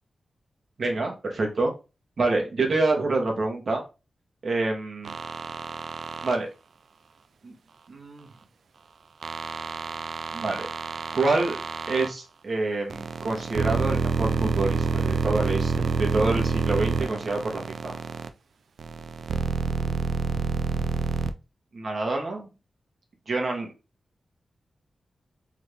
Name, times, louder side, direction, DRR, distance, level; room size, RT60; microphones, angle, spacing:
voice 1, 0.8-1.7 2.2-3.8 4.4-5.2 6.2-6.5 7.4-7.5 7.9-8.3 10.3-10.7 11.1-11.6 11.9-15.7 16.0-18.0 21.7-22.5 23.3-23.7, right 3 dB, 60° right, 2 dB, 1.3 m, -27 dB
sound 1, 5.0-6.4 9.2-12.1 12.9-18.3 18.8-21.3, right 4 dB, 80° right, 0.3 m, -28 dB
3.6 x 3.4 x 3.4 m, 0.29 s
wide cardioid pair, 85°, 0 cm